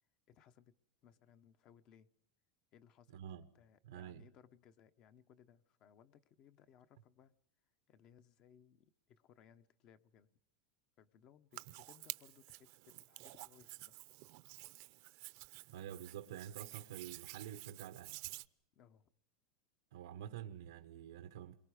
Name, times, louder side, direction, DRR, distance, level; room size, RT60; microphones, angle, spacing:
voice 1, 0.3-0.8 1.0-2.1 2.7-7.3 7.9-10.3 11.0-14.0 18.7-19.1, left 8 dB, 35° left, 0.9 m, -65 dB
voice 2, 3.1-3.5 3.8-4.2 15.7-18.2 19.9-21.6, right 10 dB, 90° right, 1.1 m, -48 dB
Hands, 11.5-18.5, right 22 dB, 50° right, 0.7 m, -51 dB
28.5 x 23.0 x 5.0 m
supercardioid pair, 165°, 2 cm